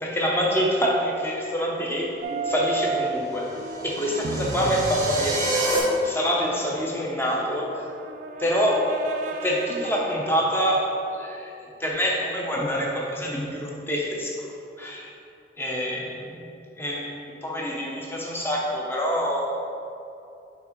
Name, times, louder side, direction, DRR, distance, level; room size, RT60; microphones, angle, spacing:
voice 1, 0.0-2.2 2.4-3.5 3.8-5.5 6.0-7.8 8.4-8.9 9.4-14.4 14.8-15.1 15.6-16.4 16.8-19.5, equal, 10° left, -2 dB, 0.7 m, -26 dB
sound 1, 2.2-10.5 11.9-12.0, right 3 dB, 40° right, 0.3 m, -34 dB
sound 2, 3.2-5.8, right 2 dB, 20° right, 0.9 m, -29 dB
6.0 x 3.5 x 4.4 m, 2.7 s
head